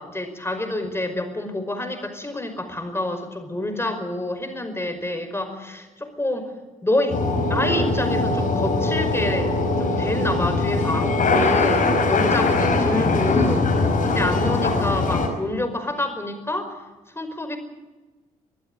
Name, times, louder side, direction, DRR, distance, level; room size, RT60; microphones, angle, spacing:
voice 1, 0.0-6.5 6.8-7.2 7.5-9.5 9.8-13.6 14.0-16.7 17.2-17.6, left 1 dB, 15° left, 7 dB, 5.2 m, -27 dB
sound 1, 7.1-15.3, left 3 dB, 50° left, 5.1 m, -21 dB
23.5 x 15.5 x 8.8 m, 1.2 s
figure-of-eight pair, 45°, 18 cm